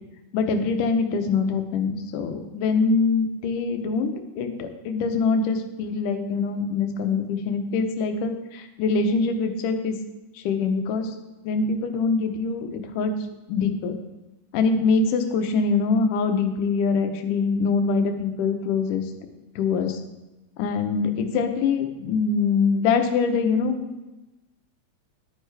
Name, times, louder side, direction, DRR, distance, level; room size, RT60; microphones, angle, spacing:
voice 1, 0.3-10.0 10.3-11.1 11.4-13.1 13.5-14.0 14.5-19.1 19.6-20.0 20.6-23.9, left 4 dB, 85° left, 6 dB, 2.4 m, -24 dB
10.5 x 9.3 x 3.3 m, 1.0 s
omnidirectional pair, 3.6 m